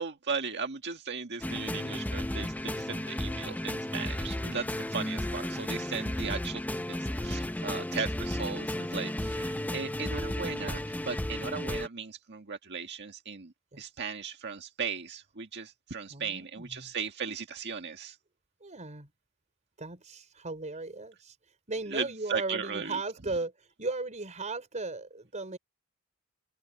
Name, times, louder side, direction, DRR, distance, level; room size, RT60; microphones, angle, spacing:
voice 1, 0.0-6.6 6.9-18.2 21.9-23.0, right 5 dB, 50° right, 1.8 m, -37 dB
sound 1, 1.4-11.9, left 1 dB, 5° left, 0.5 m, -34 dB
voice 2, 16.1-16.9 18.6-19.1 19.8-21.4 21.7-25.6, right 3 dB, 35° right, 4.7 m, -36 dB
open air
head